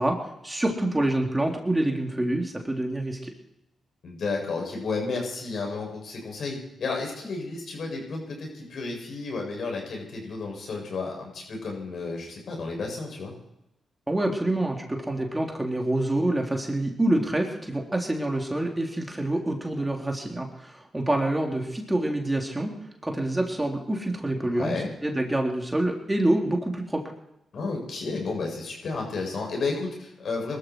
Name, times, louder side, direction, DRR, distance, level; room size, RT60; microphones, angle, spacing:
voice 1, 0.0-3.3 14.1-22.7 23.0-24.7 25.0-27.0, right 1 dB, 15° right, 1 dB, 3.6 m, -26 dB
voice 2, 4.0-13.3 24.4-24.9 27.5-30.6, left 3 dB, 65° left, 0 dB, 7.6 m, -32 dB
21.5 x 13.5 x 4.8 m, 0.89 s
supercardioid pair, 50°, 0 cm